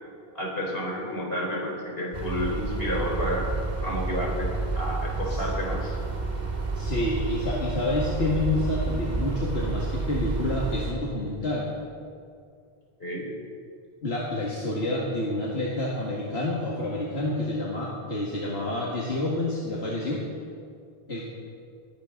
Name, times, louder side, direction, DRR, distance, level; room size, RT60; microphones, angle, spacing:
voice 1, 0.3-3.5 3.8-4.5 4.7-6.0 13.0-13.2, equal, 70° left, -2 dB, 4.5 m, -30 dB
sound 1, 2.1-10.9, right 3 dB, 45° right, 2.0 m, -30 dB
voice 2, 6.7-11.7 14.0-20.2 21.1-21.3, left 1 dB, 90° left, -5 dB, 2.2 m, -28 dB
20.0 x 16.5 x 3.9 m, 2.3 s
omnidirectional pair, 1.0 m